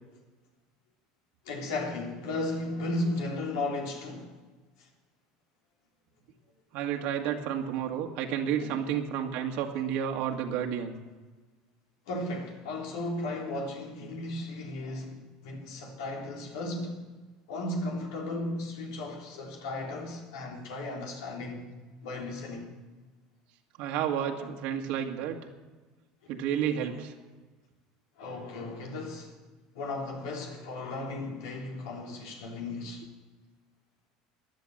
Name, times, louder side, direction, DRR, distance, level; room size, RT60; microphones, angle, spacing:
voice 1, 1.5-4.3 4.8-4.9 8.6-8.8 12.1-17.0 17.5-21.7 22.0-22.7 28.2-29.3 29.7-33.1, left 2 dB, 85° left, 3.5 m, -35 dB
voice 2, 6.7-11.0 23.8-25.4 26.3-27.1, right 9 dB, 70° right, 1.9 m, -31 dB
15.0 x 10.5 x 7.9 m
supercardioid pair, 100°, 2 cm